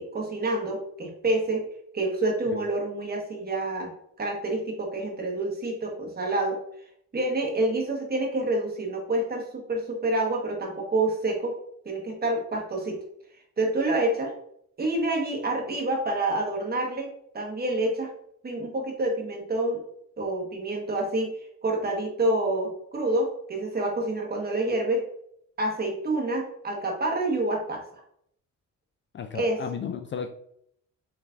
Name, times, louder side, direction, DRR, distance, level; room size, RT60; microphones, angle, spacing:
voice 1, 0.0-1.6 1.9-6.6 7.1-11.6 11.8-13.0 13.6-14.3 14.8-17.1 17.3-18.1 18.4-19.8 20.2-25.1 25.6-27.8 29.3-29.6, right 2 dB, 30° right, 0 dB, 1.4 m, -28 dB
voice 2, 29.1-30.3, left 7 dB, 40° left, 6 dB, 0.4 m, -34 dB
5.6 x 3.2 x 2.6 m, 0.70 s
cardioid pair, 90°, 30 cm